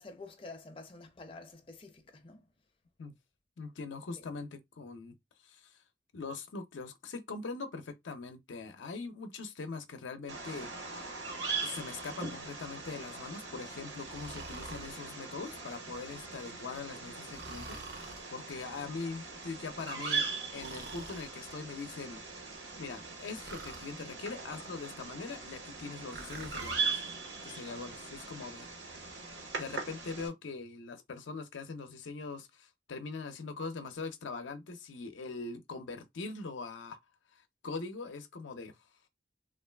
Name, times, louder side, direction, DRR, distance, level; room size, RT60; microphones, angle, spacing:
voice 1, 0.0-2.5 4.2-4.3, left 3 dB, 30° left, 0.5 m, -49 dB
voice 2, 3.6-5.1 5.4-5.8 6.1-11.1 11.6-22.2 22.8-27.0 27.4-28.7 29.6-37.0 37.3-38.8, left 4 dB, 90° left, 0.5 m, -42 dB
Bird vocalization bird call bird song, 10.3-30.3, right 4 dB, 80° right, 1.2 m, -40 dB
Breathing, 14.0-15.0 17.3-18.3 20.6-21.3 23.4-23.9 26.1-26.8, right 3 dB, 60° right, 0.6 m, -46 dB
3.1 x 2.4 x 2.2 m
head